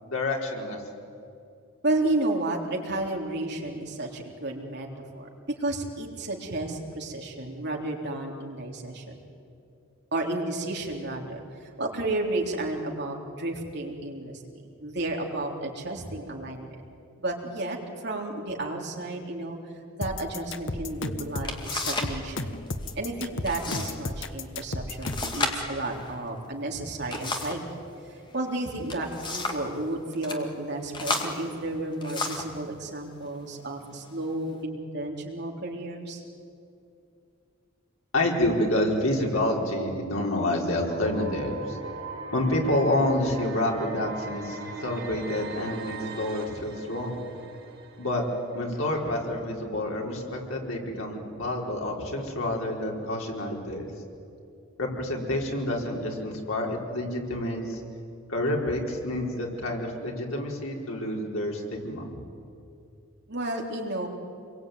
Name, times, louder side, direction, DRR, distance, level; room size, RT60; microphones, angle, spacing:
voice 1, 0.0-0.8 38.1-41.8 42.3-47.2 48.0-48.2 48.5-53.9 54.8-57.8 58.3-62.0, left 1 dB, 80° left, -1 dB, 4.8 m, -28 dB
voice 2, 1.8-4.9 5.1-5.3 5.6-9.2 10.1-16.7 17.2-19.6 19.9-22.5 23.0-27.6 28.3-36.2 63.3-64.1, right 2 dB, 50° right, 0 dB, 3.7 m, -32 dB
sound 1, 20.0-25.4, left 2 dB, 60° left, 1.3 m, -33 dB
sound 2, 20.9-21.0 21.4-22.2 22.5-22.9 23.4-24.0 24.3-24.4 25.0-27.7 28.7-29.7 30.1-30.4 30.9-32.6 33.3-33.5 34.1-34.6, left 3 dB, 20° left, 2.2 m, -33 dB
sound 3, 40.9-48.9, right 4 dB, 70° right, 4.1 m, -40 dB
27.0 x 22.5 x 9.5 m, 2.6 s
head